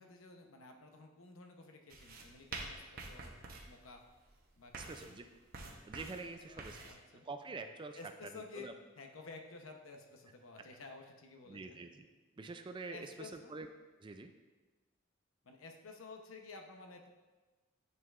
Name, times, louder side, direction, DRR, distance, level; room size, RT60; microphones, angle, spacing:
voice 1, 0.0-4.0 4.6-5.2 6.5-7.3 8.0-11.8 12.9-13.6 15.4-17.1, left 3 dB, 85° left, 3 dB, 0.8 m, -53 dB
sound 1, 1.9-6.9, right 3 dB, 45° right, 0.9 m, -48 dB
voice 2, 4.7-5.3 5.7-6.9 7.2-8.7 11.5-12.1 12.4-13.7 14.0-14.3, right 3 dB, 25° right, 7 dB, 0.3 m, -46 dB
9.4 x 5.5 x 2.4 m, 1.3 s
head